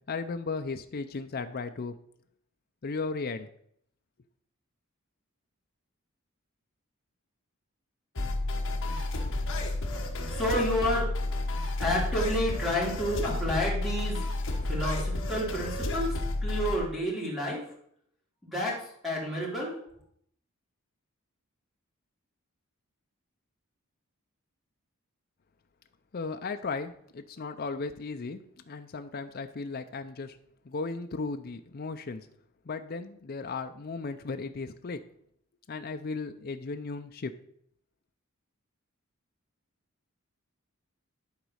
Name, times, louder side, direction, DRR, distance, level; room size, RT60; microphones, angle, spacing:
voice 1, 0.1-2.0 2.8-3.5 26.1-30.4 30.6-32.3 32.7-35.0 35.7-37.3, left 4 dB, 45° left, 7 dB, 0.5 m, -36 dB
sound 1, 8.2-16.8, left 2 dB, 60° left, 1.2 m, -31 dB
voice 2, 10.3-11.1 11.8-14.2 14.7-16.1 16.4-17.6 18.4-19.7, left 1 dB, ahead, -4 dB, 2.9 m, -30 dB
11.0 x 4.0 x 6.3 m, 0.66 s
head